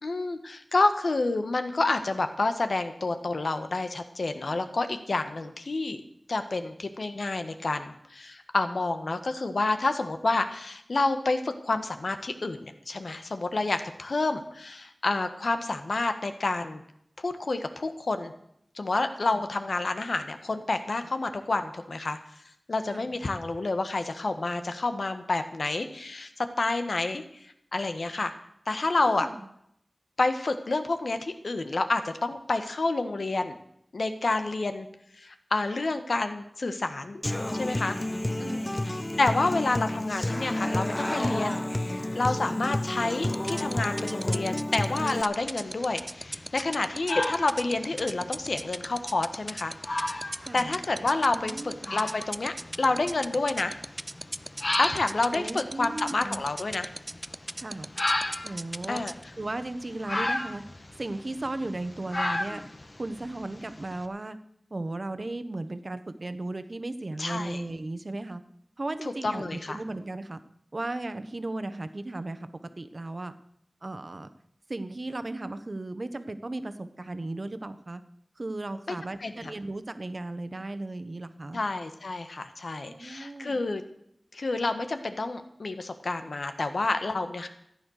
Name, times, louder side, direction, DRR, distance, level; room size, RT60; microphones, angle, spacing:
voice 1, 0.0-6.0 6.3-16.8 17.2-18.3 18.7-22.2 22.7-27.2 27.7-28.3 28.7-29.3 30.2-33.6 33.9-34.9 35.2-37.2 37.5-38.0 38.4-49.8 50.5-53.8 54.8-56.9 58.9-59.1 67.2-67.6 69.0-69.8 78.9-79.0 79.2-79.5 81.5-83.8 84.3-87.5, left 3 dB, 80° left, 8 dB, 1.4 m, -29 dB
voice 2, 22.9-23.2 29.0-29.5 38.2-39.0 50.4-50.7 51.3-52.1 55.3-56.4 57.6-57.9 58.4-59.0 59.4-60.6 61.0-62.6 63.0-64.4 64.7-68.4 68.8-70.4 70.7-72.4 72.8-73.3 73.8-74.3 74.7-78.0 78.4-81.6 82.8-83.7, right 2 dB, 50° right, 10 dB, 1.1 m, -36 dB
Human voice / Acoustic guitar, 37.2-45.2, left 1 dB, 20° left, 0.6 m, -30 dB
sound 1, 43.3-59.2, right 1 dB, 20° right, 0.4 m, -35 dB
sound 2, 45.3-64.0, left 2 dB, 40° left, 1.3 m, -36 dB
14.5 x 9.9 x 6.5 m, 0.73 s
wide cardioid pair, 75°, 0 cm